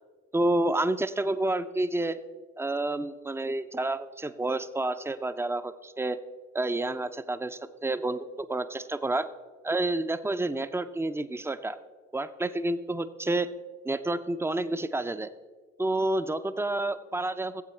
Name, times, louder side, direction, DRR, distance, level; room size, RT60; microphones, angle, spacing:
voice 1, 0.3-2.2 2.6-6.2 6.5-9.3 9.6-11.8 12.1-13.5 13.8-15.3 15.8-17.6, right 2 dB, 5° right, 12 dB, 0.5 m, -29 dB
17.5 x 8.0 x 3.2 m, 1.4 s
hypercardioid pair, 55°, 36 cm